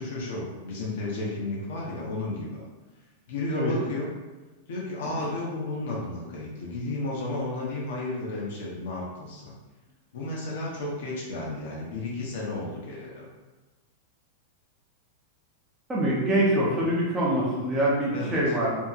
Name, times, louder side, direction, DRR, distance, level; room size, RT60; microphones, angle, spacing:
voice 1, 0.0-2.6 3.3-4.1 4.7-9.5 10.1-13.2 18.1-18.5, left 2 dB, 65° left, -4 dB, 0.7 m, -33 dB
voice 2, 15.9-18.8, right 1 dB, 10° right, -6 dB, 0.6 m, -24 dB
2.8 x 2.7 x 2.4 m, 1.2 s
supercardioid pair, 180°, 0 cm